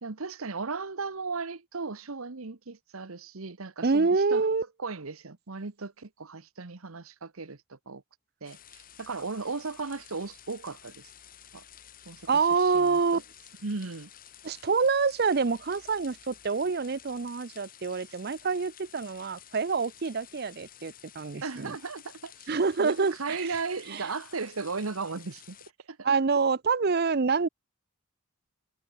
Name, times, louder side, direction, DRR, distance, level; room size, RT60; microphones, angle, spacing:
voice 1, 0.0-4.4 4.8-8.0 8.4-11.1 11.5-11.6 12.0-12.3 12.6-13.2 13.6-14.1 21.4-22.5 22.8-25.6 25.9-26.1, right 4 dB, 80° right, 1.2 m, -36 dB
voice 2, 3.8-4.6 12.3-13.2 14.4-21.8 22.5-23.4 23.9-24.1 26.0-27.5, right 4 dB, 45° right, 0.6 m, -26 dB
sound 1, 8.4-25.7, left 10 dB, 40° left, 1.8 m, -52 dB
head